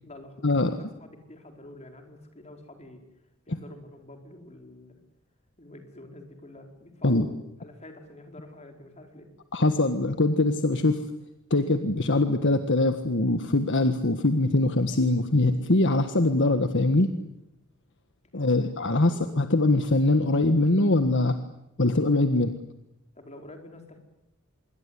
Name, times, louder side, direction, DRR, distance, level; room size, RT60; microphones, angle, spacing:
voice 1, 0.0-3.0 3.5-5.0 5.6-7.3 7.6-9.3 18.3-19.3 23.1-24.0, left 1 dB, 30° left, 4 dB, 4.9 m, -47 dB
voice 2, 9.5-11.0 11.5-17.1 18.3-21.4 21.8-22.6, left 2 dB, 55° left, 8 dB, 1.6 m, -23 dB
25.5 x 23.0 x 9.8 m, 0.84 s
head